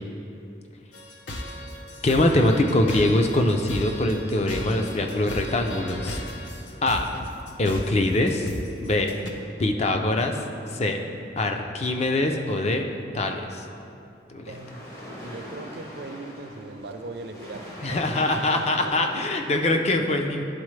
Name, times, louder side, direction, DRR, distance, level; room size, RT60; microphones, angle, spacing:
sound 1, 0.9-9.3, left 1 dB, 85° left, 0.7 m, -36 dB
voice 1, 2.0-6.2 6.8-7.1 7.6-8.5 8.8-9.2 9.6-10.4 10.7-11.0 11.4-12.8 13.1-13.6 14.3-14.5 17.8-20.4, left 1 dB, 35° left, 4 dB, 0.4 m, -23 dB
sound 2, 14.4-19.7, equal, 50° left, 1.5 m, -41 dB
voice 2, 14.5-14.9 15.2-18.1 18.8-19.1, right 2 dB, 60° right, 5 dB, 0.5 m, -39 dB
11.0 x 4.0 x 3.2 m, 2.6 s
head